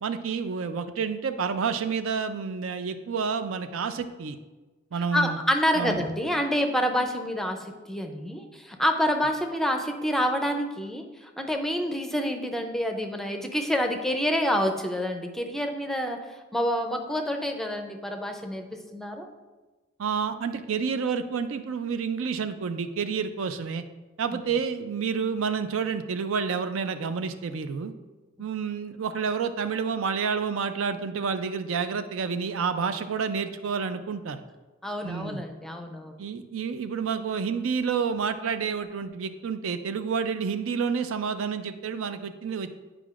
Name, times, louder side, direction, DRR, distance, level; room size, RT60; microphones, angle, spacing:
voice 1, 0.0-4.4 4.9-5.4 5.7-6.1 20.0-23.8 24.2-27.9 28.4-34.4 35.0-35.4 36.2-42.8, right 6 dB, 80° right, 9 dB, 0.4 m, -29 dB
voice 2, 5.1-11.1 11.4-16.2 16.5-19.3 24.3-24.4 34.8-36.1, equal, ahead, 4 dB, 0.5 m, -27 dB
9.1 x 5.0 x 2.4 m, 1.2 s
head